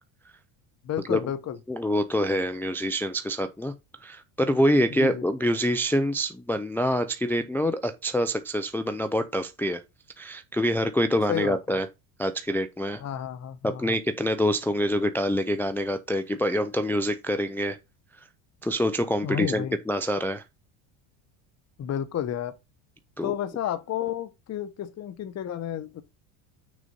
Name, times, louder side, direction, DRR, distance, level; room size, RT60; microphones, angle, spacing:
voice 1, 0.8-1.6 4.9-5.2 11.3-11.8 13.0-14.0 19.2-19.8 21.8-22.5 23.2-26.0, left 10 dB, 30° left, 0.9 m, -31 dB
voice 2, 1.7-3.7 4.0-9.8 10.2-11.9 12.2-13.0 13.6-17.8 18.6-20.4 23.2-23.3, equal, 5° left, 0.4 m, -26 dB
6.5 x 3.9 x 5.3 m
supercardioid pair, 115°, 50 cm